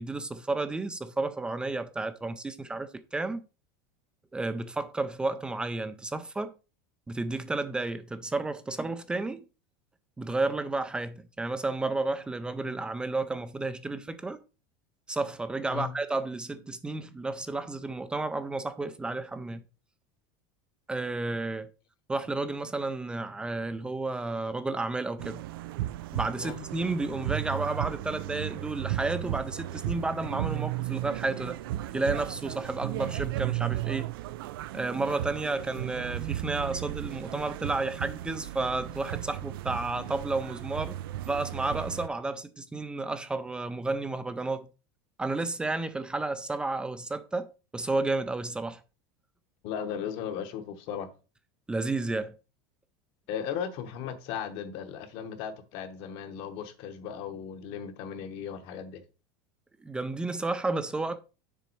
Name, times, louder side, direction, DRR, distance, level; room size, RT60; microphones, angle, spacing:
voice 1, 0.0-3.4 4.3-6.5 7.1-9.4 10.2-14.4 15.1-19.6 20.9-21.7 22.1-25.4 26.1-31.6 31.9-34.1 34.7-41.0 41.3-44.7 45.2-48.8 51.7-52.3 59.8-61.2, right 2 dB, 10° right, 0.3 m, -32 dB
sound 1, 25.2-42.1, right 15 dB, 85° right, 0.4 m, -35 dB
voice 2, 49.6-51.1 53.3-59.0, left 8 dB, 45° left, 1.1 m, -36 dB
6.8 x 3.9 x 4.6 m
supercardioid pair, 160°, 12 cm